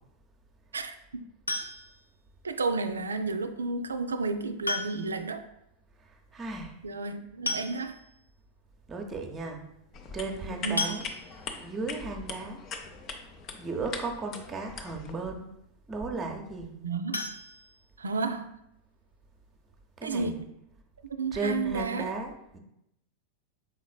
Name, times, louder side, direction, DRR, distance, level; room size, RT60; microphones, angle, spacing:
voice 1, 0.7-1.3 2.4-5.5 6.8-8.0 10.6-10.9 16.8-17.4 18.0-18.6 20.0-20.5 21.0-22.1, right 4 dB, 75° right, 9 dB, 0.3 m, -32 dB
sound 1, 1.5-2.1 3.6-3.7 4.6-5.3 5.6-5.7 6.0-6.1 7.1-7.2 7.5-8.2 8.7-8.8 9.2-9.3 10.8-11.6 17.1-18.3 18.7-18.8 19.2-19.3 19.7-19.8, left 2 dB, 85° left, 0.4 m, -34 dB
voice 2, 6.0-6.8 8.9-9.6 10.1-11.1 11.6-12.6 13.6-15.5 15.9-16.8 20.0-20.4 21.3-22.6, right 3 dB, 20° right, 3 dB, 0.7 m, -35 dB
sound 2, 9.9-15.1, left 5 dB, 30° left, 0.6 m, -41 dB
5.7 x 4.0 x 2.3 m, 0.82 s
figure-of-eight pair, 90°, 0 cm